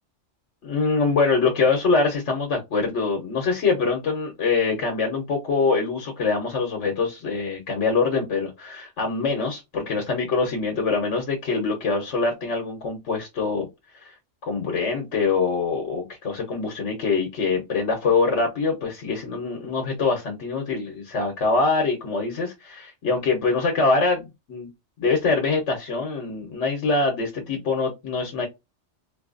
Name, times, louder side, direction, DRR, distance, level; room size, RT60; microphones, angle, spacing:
voice 1, 0.6-13.7 13.9-14.1 14.4-24.7 25.0-28.5, left 4 dB, 85° left, 1.3 m, -24 dB
4.2 x 2.3 x 2.5 m
omnidirectional pair, 1.2 m